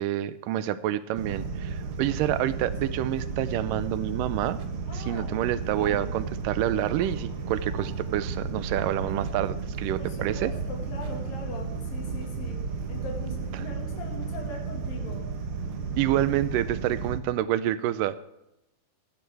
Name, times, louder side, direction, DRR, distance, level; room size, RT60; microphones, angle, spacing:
voice 1, 0.0-4.6 4.9-10.5 16.0-18.2, right 12 dB, 80° right, 14 dB, 2.3 m, -28 dB
sound 1, 1.1-17.2, right 4 dB, 60° right, 1.4 m, -33 dB
voice 2, 4.9-5.3 5.8-6.1 10.0-12.6 12.9-15.3, left 3 dB, 85° left, 0 dB, 3.7 m, -41 dB
Cheering, 6.8-11.8, right 2 dB, 25° right, 3.0 m, -52 dB
15.5 x 13.0 x 3.4 m, 0.88 s
omnidirectional pair, 3.9 m